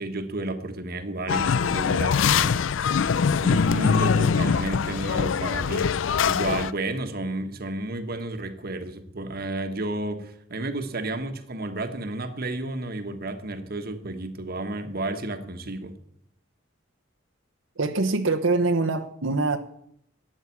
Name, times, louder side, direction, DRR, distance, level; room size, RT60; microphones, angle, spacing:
voice 1, 0.0-2.6 3.4-5.9 6.2-15.9, right 2 dB, 50° right, 1.3 m, -32 dB
sound 1, 1.3-6.7, left 6 dB, 70° left, 0.4 m, -23 dB
voice 2, 17.8-19.6, right 3 dB, 80° right, 1.0 m, -24 dB
12.5 x 8.8 x 8.5 m
head